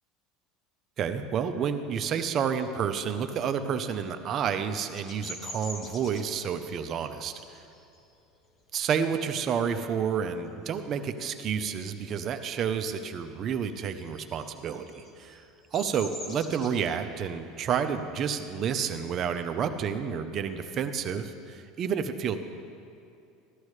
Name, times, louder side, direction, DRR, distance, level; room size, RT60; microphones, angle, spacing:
voice 1, 1.0-7.6 8.7-15.4 15.7-22.4, right 7 dB, 40° right, 8 dB, 0.7 m, -30 dB
Bird vocalization bird call bird song, 5.0-10.2 10.6-10.9 11.2-12.5 12.7-20.1, left 1 dB, 35° left, 1.6 m, -46 dB
15.0 x 12.0 x 3.3 m, 2.6 s
supercardioid pair, 120°, 0 cm